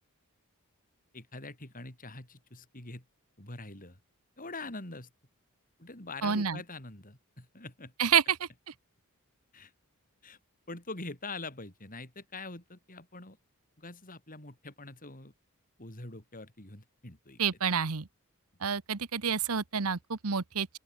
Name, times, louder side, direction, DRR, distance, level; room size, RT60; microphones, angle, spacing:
voice 1, 1.1-3.0 3.4-4.0 4.4-5.1 5.8-7.9 9.5-9.7 10.2-10.4 10.7-13.4 13.8-15.3 15.8-17.4, left 3 dB, 40° left, 5.3 m, -44 dB
voice 2, 6.2-6.6 8.0-8.7 17.4-18.1 18.6-20.8, right 7 dB, 75° right, 1.1 m, -29 dB
open air
head